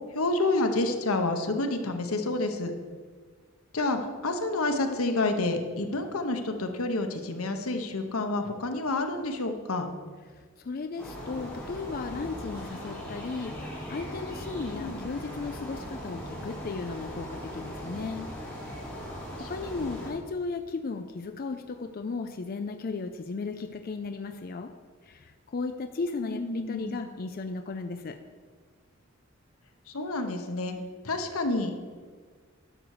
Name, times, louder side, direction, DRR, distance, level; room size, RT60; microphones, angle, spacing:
voice 1, 0.1-2.7 3.7-9.9 14.8-15.1 19.4-19.5 19.8-20.0 26.2-27.0 29.9-30.7 31.0-31.9, left 2 dB, 85° left, 6 dB, 1.0 m, -29 dB
voice 2, 10.3-18.3 19.4-24.7 25.1-28.2, left 4 dB, 45° left, 7 dB, 0.4 m, -35 dB
sound 1, 11.0-20.1, equal, 5° left, 3.1 m, -39 dB
11.5 x 6.7 x 4.9 m, 1.5 s
head